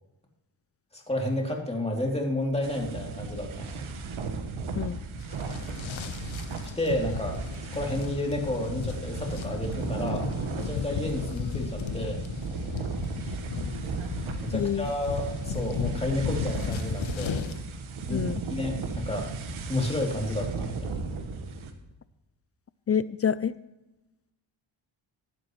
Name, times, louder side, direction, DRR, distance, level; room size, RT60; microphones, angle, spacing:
voice 1, 0.9-3.8 6.8-7.4 7.7-12.2 14.4-17.4 18.1-19.3 19.7-21.0, left 1 dB, 15° left, -1 dB, 3.0 m, -31 dB
sound 1, 2.6-21.7, right 4 dB, 85° right, 1.6 m, -35 dB
sound 2, 5.2-17.6, left 6 dB, 70° left, 1.2 m, -35 dB
voice 2, 14.5-14.9 18.1-18.4 22.9-23.5, left 8 dB, 35° left, 17 dB, 0.4 m, -27 dB
15.5 x 11.0 x 3.2 m, 1.0 s
cardioid pair, 90°, 48 cm